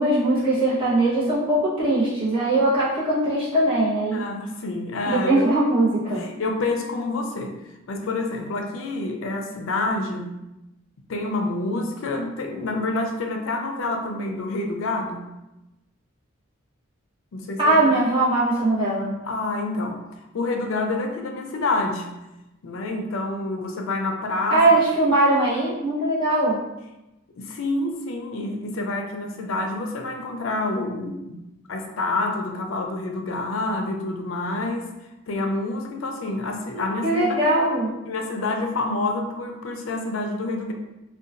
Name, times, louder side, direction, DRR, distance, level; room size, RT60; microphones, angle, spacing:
voice 1, 0.0-4.2 5.1-6.2 17.6-19.1 24.5-26.6 36.7-37.9, right 2 dB, 25° right, -9 dB, 1.0 m, -21 dB
voice 2, 4.1-5.5 6.1-7.6 7.9-10.3 11.1-15.2 17.3-18.0 19.2-20.0 20.3-22.1 22.6-24.6 27.4-31.4 31.7-34.9 35.3-37.5 38.0-40.7, left 2 dB, 75° left, 3 dB, 0.4 m, -28 dB
3.8 x 2.2 x 2.5 m, 0.97 s
head